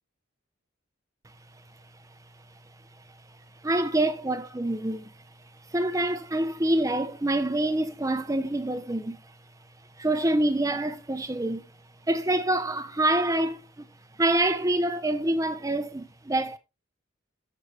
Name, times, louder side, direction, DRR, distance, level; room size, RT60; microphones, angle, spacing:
voice 1, 3.6-5.1 5.7-9.2 10.0-11.6 12.1-13.9 14.2-16.6, right 1 dB, 15° right, 0.6 m, -26 dB
13.5 x 4.8 x 3.3 m
head